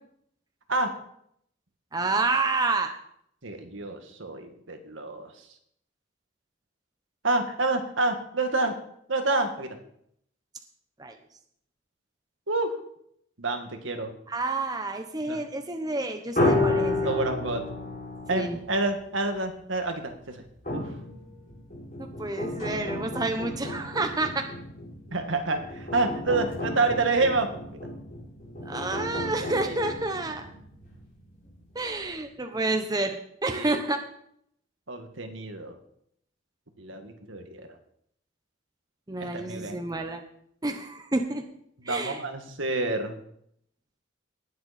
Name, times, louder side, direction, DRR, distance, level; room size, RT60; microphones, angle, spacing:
voice 1, 1.9-2.9 11.0-11.2 14.3-17.1 18.3-18.6 22.0-24.5 28.6-30.4 31.7-34.0 39.1-40.2 40.6-41.4 41.8-42.2, right 2 dB, 20° right, 5 dB, 0.9 m, -29 dB
voice 2, 3.4-5.3 7.2-8.7 9.1-9.7 12.5-12.8 13.4-14.1 15.3-15.4 17.0-17.6 18.3-20.9 25.1-27.5 29.6-29.8 33.5-33.8 34.9-35.7 36.8-37.8 39.2-39.8 41.8-43.2, right 2 dB, 80° right, 5 dB, 1.9 m, -28 dB
sound 1, 16.3-19.3 20.6-31.0 31.5-31.6 31.8-32.0, left 2 dB, 45° left, 6.6 m, -32 dB
19.0 x 7.8 x 4.3 m, 0.69 s
head